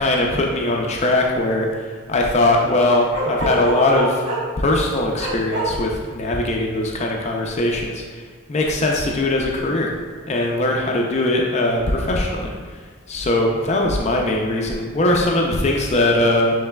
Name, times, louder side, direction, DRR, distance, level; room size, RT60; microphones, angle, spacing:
voice 1, 0.0-4.2 4.6-8.2 8.5-9.9 10.3-16.7, left 1 dB, 30° left, 0 dB, 0.4 m, -20 dB
Bark, 3.1-4.5 5.2-5.7, right 1 dB, 80° right, 1.4 m, -25 dB
6.6 x 3.2 x 2.2 m, 1.5 s
head